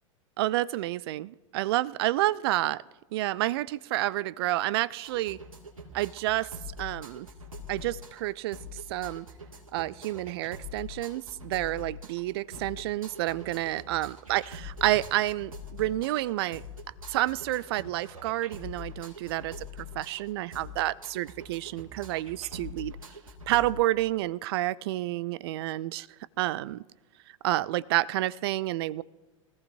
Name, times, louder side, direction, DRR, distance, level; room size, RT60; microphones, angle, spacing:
voice 1, 0.4-2.8 3.1-5.4 5.9-6.5 6.8-7.3 7.7-9.3 9.7-16.6 17.1-23.0 23.5-26.1 26.4-26.8 27.4-29.0, right 16 dB, 45° right, 21 dB, 0.4 m, -29 dB
sound 1, 5.0-23.7, left 3 dB, 80° right, 2.1 m, -44 dB
sound 2, 10.4-10.7 12.5-13.9 14.9-15.4, left 5 dB, 40° left, 4.1 m, -53 dB
23.0 x 15.0 x 2.6 m, 1.2 s
figure-of-eight pair, 90°, 17 cm